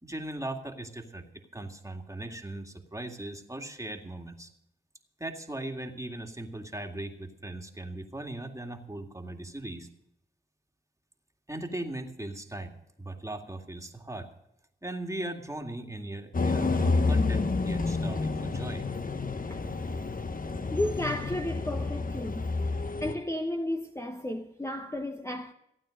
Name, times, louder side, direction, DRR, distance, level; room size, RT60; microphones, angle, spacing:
voice 1, 0.0-1.3 1.5-4.5 5.2-9.9 11.5-12.7 13.0-14.3 14.8-18.8, right 1 dB, 15° right, 2.1 m, -38 dB
sound 1, 16.3-23.1, left 3 dB, 40° left, 1.0 m, -29 dB
voice 2, 20.7-22.5 23.0-25.5, left 1 dB, 15° left, 1.0 m, -33 dB
15.5 x 9.1 x 6.5 m
cardioid pair, 40°, 21 cm